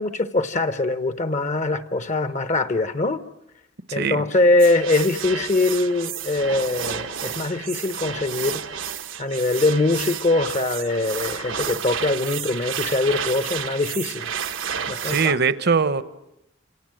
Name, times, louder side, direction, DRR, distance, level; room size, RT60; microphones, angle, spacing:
voice 1, 0.0-3.2 3.9-8.6 9.2-14.3 14.9-15.4, left 2 dB, 40° left, 1.0 m, -22 dB
voice 2, 3.9-4.2 15.0-16.0, right 5 dB, 55° right, 1.0 m, -21 dB
sound 1, 4.6-15.3, right 8 dB, 85° right, 1.2 m, -31 dB
27.5 x 27.5 x 7.7 m
head